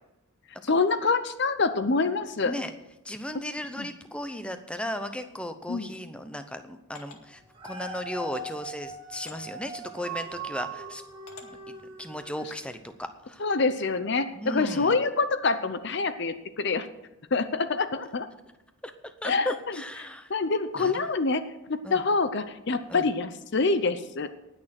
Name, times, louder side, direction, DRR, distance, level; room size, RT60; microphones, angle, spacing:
voice 1, 0.7-2.5 5.7-5.9 13.4-16.9 17.3-18.3 19.2-19.5 20.3-24.3, left 4 dB, 50° left, 11 dB, 0.6 m, -26 dB
voice 2, 3.0-11.0 11.4-13.5 14.3-15.0 18.8-20.3 20.7-21.0 21.8-22.0 22.9-23.1, equal, 5° left, 9 dB, 0.7 m, -36 dB
sound 1, 5.8-6.0 6.9-7.2 8.2-8.5 9.3-9.4 10.1-10.4 11.3-11.5, left 5 dB, 80° left, 1.9 m, -48 dB
Dog, 7.4-12.7 13.2-13.3, right 3 dB, 20° right, 2.0 m, -40 dB
19.0 x 6.6 x 5.9 m, 0.94 s
head